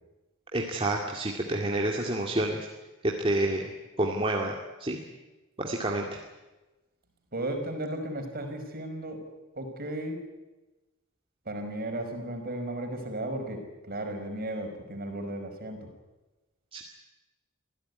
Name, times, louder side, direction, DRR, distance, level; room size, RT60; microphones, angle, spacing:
voice 1, 0.5-2.6 3.0-3.7 4.0-4.5 4.8-5.0 5.6-6.1 16.7-16.8, right 1 dB, 25° right, -1 dB, 2.5 m, -28 dB
voice 2, 7.3-9.2 9.5-10.2 11.5-15.9, right 1 dB, 45° right, 5 dB, 5.2 m, -35 dB
26.5 x 16.0 x 9.6 m, 1.1 s
head